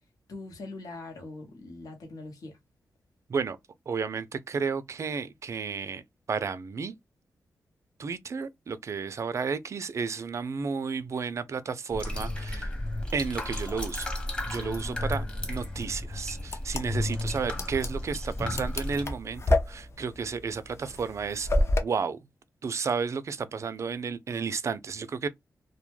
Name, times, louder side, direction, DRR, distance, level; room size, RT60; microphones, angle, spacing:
voice 1, 0.3-2.6, left 2 dB, 70° left, 0.9 m, -42 dB
voice 2, 3.9-6.0 6.3-6.9 8.0-12.7 13.1-14.1 14.5-21.5 21.8-22.2 22.6-25.3, right 5 dB, 50° right, 0.4 m, -32 dB
sound 1, 11.9-19.0, left 1 dB, 15° left, 0.9 m, -33 dB
sound 2, 16.4-21.8, left 1 dB, 45° left, 0.5 m, -29 dB
2.1 x 2.1 x 3.0 m
cardioid pair, 85°, 6 cm